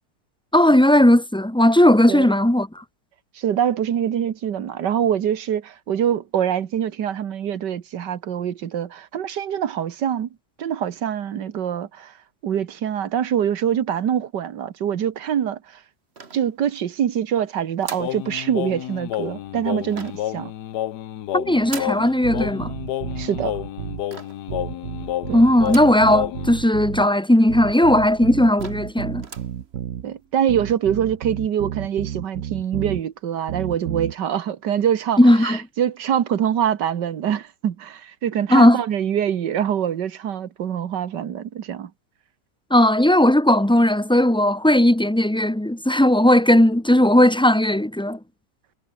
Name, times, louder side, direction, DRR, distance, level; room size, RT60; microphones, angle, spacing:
voice 1, 0.5-2.8 21.3-22.7 25.3-29.2 35.2-35.6 38.5-38.8 42.7-48.2, left 1 dB, 5° left, 0.7 m, -16 dB
voice 2, 3.4-10.3 10.6-12.1 12.4-15.8 16.3-20.5 23.2-23.6 25.3-25.4 30.0-41.9, right 9 dB, 85° right, 1.9 m, -24 dB
sound 1, 16.2-16.9 17.8-18.2 19.9-20.4 21.7-22.1 24.1-24.5 25.7-26.1 26.6-26.7 26.9-27.0 27.7-27.8 28.2-28.3 28.6-28.9 29.2-29.6, right 4 dB, 40° right, 2.1 m, -39 dB
Singing, 18.0-26.6, left 13 dB, 75° left, 1.3 m, -30 dB
sound 2, 22.2-24.0 24.5-27.1 27.5-30.1 30.5-33.0 33.5-34.1, right 10 dB, 55° right, 1.1 m, -32 dB
omnidirectional pair, 1.8 m